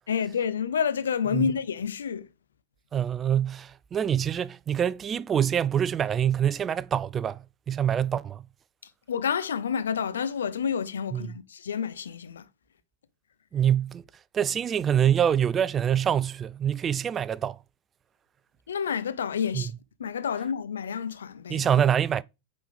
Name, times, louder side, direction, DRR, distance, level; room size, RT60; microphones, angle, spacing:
voice 1, 0.1-2.3 9.1-12.4 18.7-19.7 20.0-21.7, left 7 dB, 65° left, 0.6 m, -29 dB
voice 2, 2.9-8.5 11.1-11.4 13.5-14.0 14.3-17.6 19.5-19.7 21.5-22.2, right 9 dB, 25° right, 0.3 m, -25 dB
8.6 x 3.9 x 3.4 m
figure-of-eight pair, 90°, 0 cm